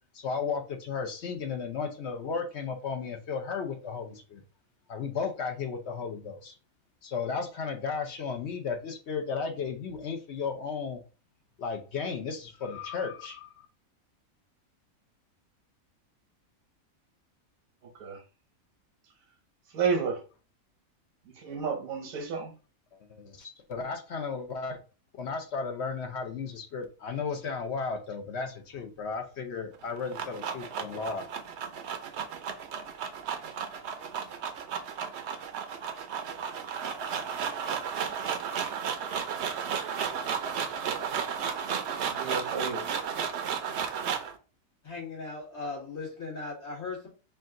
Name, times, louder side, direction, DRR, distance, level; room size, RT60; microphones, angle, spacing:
voice 1, 0.1-4.4 4.9-6.6 7.0-11.0 11.6-13.7 23.1-24.8 25.1-31.2, left 5 dB, 60° left, 4 dB, 0.8 m, -34 dB
voice 2, 17.8-18.2 19.7-20.2 21.3-22.5 42.0-42.8, right 5 dB, 80° right, 4 dB, 1.4 m, -31 dB
sound 1, 29.7-44.4, right 7 dB, 60° right, 0.8 m, -33 dB
voice 3, 44.8-47.1, left 3 dB, 80° left, -5 dB, 2.6 m, -38 dB
4.6 x 2.4 x 3.7 m, 0.35 s
omnidirectional pair, 1.4 m